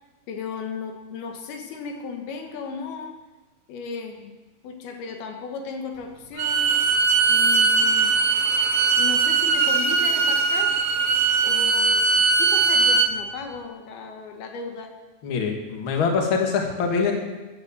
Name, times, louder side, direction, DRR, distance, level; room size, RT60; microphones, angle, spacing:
voice 1, 0.3-3.1 3.7-4.3 4.6-6.7 7.3-8.1 9.0-10.8 11.4-14.9, left 5 dB, 80° left, 4 dB, 3.3 m, -35 dB
Bowed string instrument, 6.4-13.1, right 4 dB, 80° right, 1.4 m, -20 dB
voice 2, 15.2-17.1, left 5 dB, 40° left, 2 dB, 2.2 m, -24 dB
15.0 x 10.0 x 7.3 m, 1.2 s
omnidirectional pair, 4.4 m